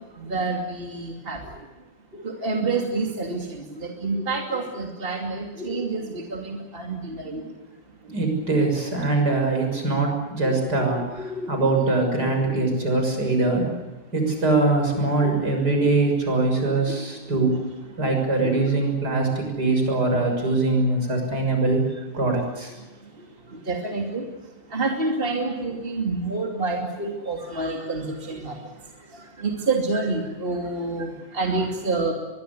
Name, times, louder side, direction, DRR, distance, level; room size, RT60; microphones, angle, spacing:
voice 1, 0.2-1.4 2.1-7.5 10.4-11.6 12.1-12.5 15.0-15.3 18.4-18.7 19.7-19.8 23.5-24.2 24.7-28.6 29.4-32.1, right 3 dB, 30° right, 2 dB, 2.9 m, -28 dB
voice 2, 8.0-13.7 14.1-17.5 18.0-21.8 22.1-22.7, right 3 dB, 60° right, 3 dB, 7.2 m, -22 dB
24.0 x 22.0 x 8.4 m, 1.2 s
omnidirectional pair, 2.0 m